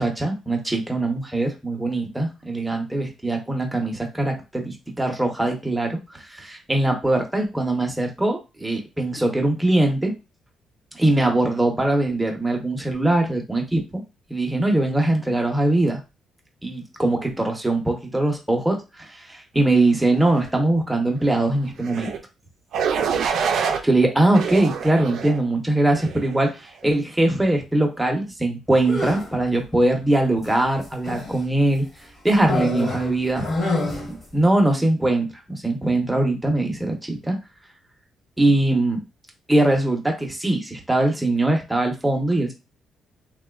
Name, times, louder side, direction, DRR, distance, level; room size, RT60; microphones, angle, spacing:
voice 1, 0.0-10.1 10.9-14.0 14.3-16.0 16.6-22.1 23.8-31.9 32.2-33.4 34.1-37.4 38.4-39.0 39.5-42.5, right 2 dB, 10° right, 2 dB, 0.8 m, -21 dB
sound 1, 21.8-22.2 22.7-23.8 24.3-25.4 26.0-26.3, right 6 dB, 75° right, 0.4 m, -25 dB
sound 2, 28.8-29.4 30.4-31.4 32.4-34.2, left 2 dB, 40° left, 1.1 m, -27 dB
2.9 x 2.2 x 2.3 m, 0.27 s
cardioid pair, 90°, 0 cm